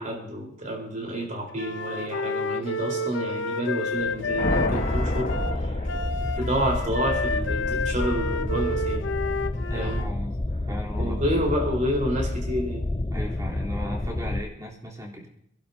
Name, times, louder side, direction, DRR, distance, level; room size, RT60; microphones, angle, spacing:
voice 1, 0.0-5.9 6.3-9.1 9.7-10.1 11.0-12.9, equal, 40° right, 0 dB, 4.2 m, -29 dB
Wind instrument woodwind instrument, 1.5-10.1, left 2 dB, 70° left, 0.7 m, -30 dB
sound 1, 3.9-6.5, left 2 dB, 45° left, 1.3 m, -30 dB
sound 2, 4.7-14.4, left 1 dB, 20° left, 0.5 m, -29 dB
voice 2, 9.7-10.4 10.7-11.2 13.1-15.3, left 1 dB, 20° right, -2 dB, 3.5 m, -36 dB
27.0 x 11.5 x 2.8 m, 0.76 s
head